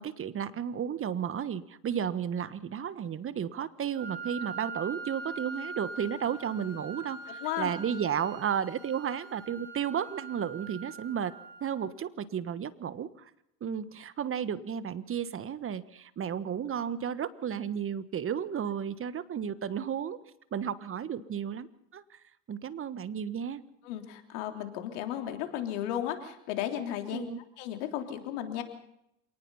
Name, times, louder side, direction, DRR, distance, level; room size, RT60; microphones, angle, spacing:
voice 1, 0.0-11.3 11.6-13.3 13.6-20.2 20.5-21.7 21.9-22.2 22.5-23.6 27.1-27.4, right 8 dB, 35° right, 15 dB, 1.4 m, -33 dB
Wind instrument woodwind instrument, 3.9-11.9, right 3 dB, 70° right, 6.9 m, -43 dB
voice 2, 7.4-7.7 23.8-27.3 27.6-28.6, left 11 dB, 80° left, 5 dB, 3.5 m, -34 dB
27.0 x 19.0 x 5.6 m, 0.78 s
hypercardioid pair, 80°, 35 cm